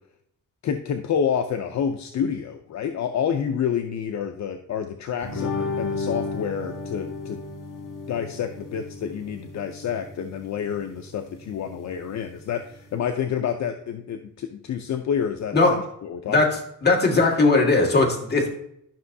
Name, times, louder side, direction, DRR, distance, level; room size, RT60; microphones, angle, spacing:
voice 1, 0.6-7.4 8.1-16.6, left 8 dB, 60° left, 6 dB, 0.6 m, -28 dB
sound 1, 5.2-12.9, left 3 dB, 80° left, 2.1 m, -34 dB
voice 2, 16.3-18.5, left 3 dB, 30° left, -1 dB, 2.0 m, -19 dB
12.0 x 6.0 x 2.7 m, 0.73 s
wide cardioid pair, 130°, 31 cm